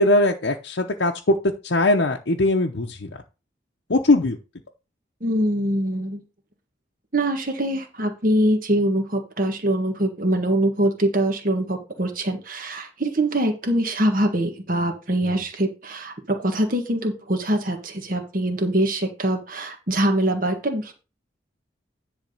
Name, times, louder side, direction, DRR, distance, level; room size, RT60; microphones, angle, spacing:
voice 1, 0.0-1.4 1.6-3.1 3.9-4.4 15.3-15.4, left 2 dB, 65° left, 1 dB, 0.8 m, -20 dB
voice 2, 5.2-6.2 7.1-20.9, right 1 dB, 45° right, 4 dB, 1.6 m, -23 dB
10.5 x 3.6 x 6.6 m, 0.31 s
head